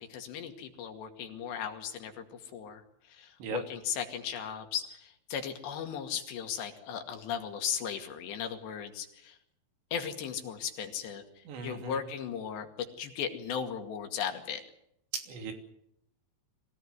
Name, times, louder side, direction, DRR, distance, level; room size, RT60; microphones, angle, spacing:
voice 1, 0.0-9.4 9.9-12.7 13.0-14.6, left 8 dB, 75° left, 6 dB, 4.4 m, -37 dB
voice 2, 11.5-12.0 15.3-15.5, right 5 dB, 75° right, 5 dB, 5.2 m, -38 dB
25.0 x 17.0 x 9.6 m, 0.75 s
omnidirectional pair, 5.1 m